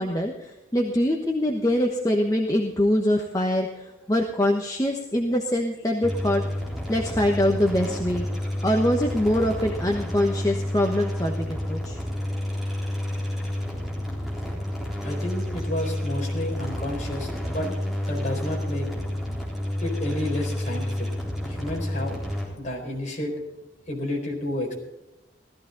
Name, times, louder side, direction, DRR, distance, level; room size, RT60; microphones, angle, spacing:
voice 1, 0.0-6.4 6.9-8.3 8.6-12.0, left 1 dB, 20° left, 2 dB, 1.1 m, -24 dB
sound 1, 6.0-22.5, left 1 dB, ahead, 3.8 m, -30 dB
voice 2, 15.0-17.7 18.0-18.9 19.8-21.1 21.4-22.1 22.4-23.3 23.9-24.8, left 1 dB, 40° left, 0 dB, 4.2 m, -31 dB
16.5 x 14.0 x 3.9 m, 0.98 s
head